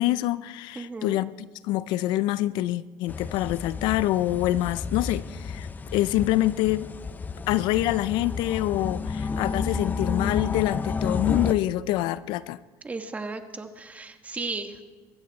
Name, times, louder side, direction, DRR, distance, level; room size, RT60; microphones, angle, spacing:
voice 1, 0.0-6.9 7.5-12.6, left 15 dB, 75° left, 0.5 m, -26 dB
voice 2, 0.7-1.2 12.8-14.9, right 3 dB, 20° right, 1.4 m, -35 dB
sound 1, 3.1-11.5, left 5 dB, 20° left, 0.6 m, -31 dB
23.5 x 14.0 x 4.0 m
cardioid pair, 115°, 8 cm